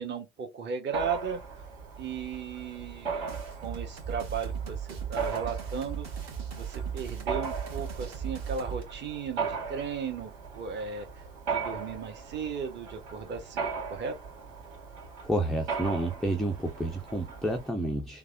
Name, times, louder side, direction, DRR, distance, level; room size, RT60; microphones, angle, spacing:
voice 1, 0.0-1.4 2.0-6.1 6.5-11.1 11.5-14.2, right 6 dB, 30° right, 1.1 m, -36 dB
Mechanisms, 0.9-17.7, right 5 dB, 60° right, 2.2 m, -38 dB
sound 1, 3.3-8.8, right 7 dB, 45° right, 1.6 m, -37 dB
voice 2, 15.2-18.2, right 1 dB, ahead, 0.3 m, -30 dB
3.3 x 2.2 x 2.5 m
hypercardioid pair, 75°, 38 cm